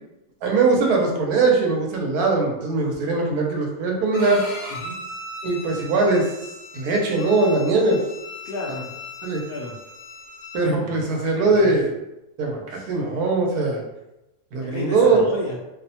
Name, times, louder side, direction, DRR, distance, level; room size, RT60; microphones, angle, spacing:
voice 1, 0.4-4.4 5.4-6.3 6.7-8.0 9.2-9.4 10.5-11.9 12.4-13.8 14.5-15.2, right 3 dB, 90° right, 0 dB, 1.2 m, -21 dB
Bowed string instrument, 4.1-10.6, left 2 dB, 40° left, 0.7 m, -38 dB
voice 2, 8.4-8.9 9.4-9.7 10.8-11.8 12.7-12.9 14.6-15.6, left 1 dB, 80° left, -5 dB, 0.5 m, -33 dB
2.7 x 2.0 x 2.7 m, 0.94 s
omnidirectional pair, 1.5 m